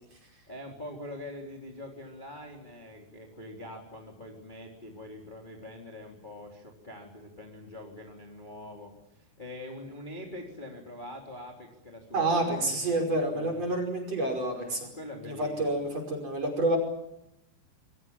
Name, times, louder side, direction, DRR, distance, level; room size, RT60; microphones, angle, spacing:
voice 1, 0.5-13.7 14.5-15.8, left 1 dB, 10° left, 1 dB, 3.0 m, -44 dB
voice 2, 12.1-14.9 15.2-16.8, right 2 dB, 30° right, 3 dB, 6.1 m, -28 dB
27.5 x 23.5 x 7.4 m, 0.84 s
omnidirectional pair, 5.7 m